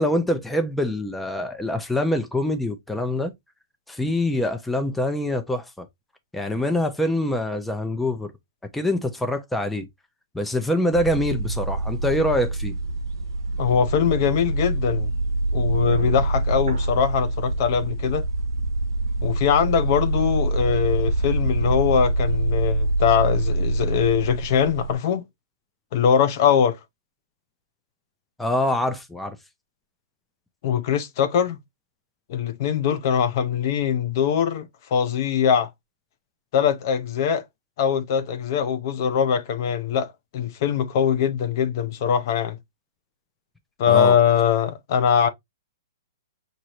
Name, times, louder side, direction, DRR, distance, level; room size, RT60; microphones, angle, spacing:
voice 1, 0.0-3.3 3.9-5.9 6.3-8.3 8.7-9.9 10.3-12.7 28.4-29.4 43.9-44.1, left 1 dB, 5° left, 0.6 m, -24 dB
sound 1, 10.9-24.9, right 2 dB, 80° right, 0.6 m, -25 dB
voice 2, 13.6-15.1 15.5-18.2 19.2-25.2 25.9-26.8 30.6-31.6 32.3-35.7 36.5-37.4 37.8-42.6 43.8-45.3, left 8 dB, 45° left, 0.7 m, -22 dB
6.2 x 2.6 x 2.9 m
hypercardioid pair, 150°, 2 cm